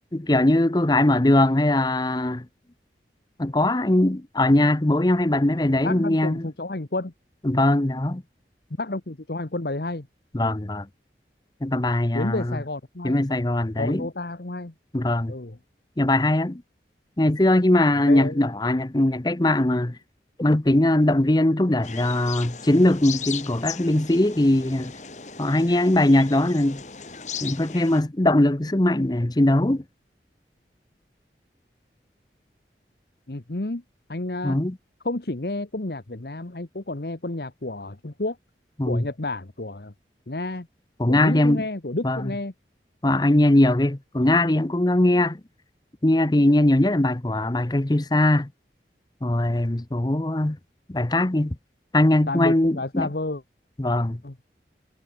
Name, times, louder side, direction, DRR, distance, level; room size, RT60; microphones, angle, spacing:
voice 1, 0.1-2.5 3.4-6.5 7.4-8.2 10.3-10.9 11.6-12.6 13.0-14.1 14.9-15.3 16.0-16.6 17.2-20.0 20.4-24.9 25.4-26.8 27.4-29.8 34.4-34.8 38.8-39.0 41.0-41.6 42.0-42.3 43.0-45.4 46.0-48.5 49.2-50.6 50.9-51.6 51.9-53.1 53.8-54.2, left 1 dB, 25° left, 0.8 m, -21 dB
voice 2, 5.8-7.1 8.8-10.1 12.1-13.2 13.8-14.7 15.3-15.6 18.0-18.4 33.3-33.8 34.1-34.6 35.0-38.4 38.9-39.9 40.3-40.7 41.1-42.5 52.3-53.4 54.2-54.3, left 2 dB, 65° left, 1.3 m, -30 dB
sound 1, 21.8-28.0, left 7 dB, 40° left, 2.3 m, -37 dB
head